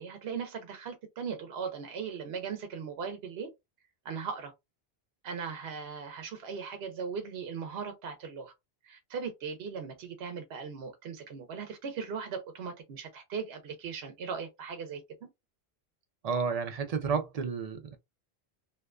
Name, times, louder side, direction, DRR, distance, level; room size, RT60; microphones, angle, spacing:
voice 1, 0.0-3.5 4.0-4.5 5.2-8.5 8.8-15.3, right 6 dB, 75° right, 0.8 m, -38 dB
voice 2, 16.2-18.0, right 5 dB, 55° right, 0.4 m, -31 dB
2.7 x 2.1 x 2.3 m
omnidirectional pair, 1.1 m